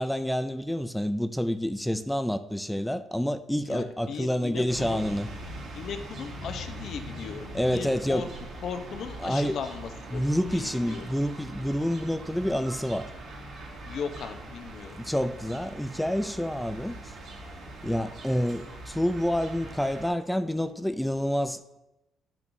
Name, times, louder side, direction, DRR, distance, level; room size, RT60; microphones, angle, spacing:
voice 1, 0.0-5.3 7.5-8.3 9.2-9.6 10.1-13.1 14.9-17.0 17.8-21.8, equal, 5° left, 0.4 m, -28 dB
voice 2, 3.7-5.0 5.7-8.3 8.6-10.2 10.5-11.1 13.8-15.0, left 6 dB, 60° left, 0.8 m, -37 dB
sound 1, 4.7-20.1, right 1 dB, 65° right, 2.1 m, -42 dB
12.0 x 5.9 x 2.7 m
cardioid pair, 130°, 0 cm